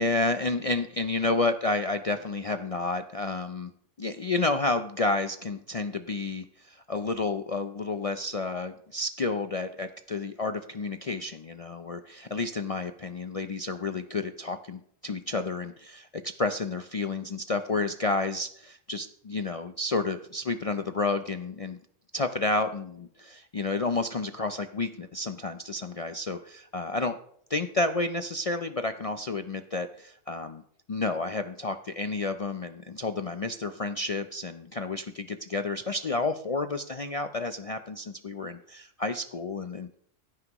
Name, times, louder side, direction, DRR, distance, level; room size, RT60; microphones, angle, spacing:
voice 1, 0.0-3.7 4.0-21.8 22.1-27.2 27.5-30.6 30.9-39.9, left 3 dB, 55° left, 8 dB, 0.4 m, -30 dB
16.0 x 9.7 x 3.0 m, 0.66 s
omnidirectional pair, 1.3 m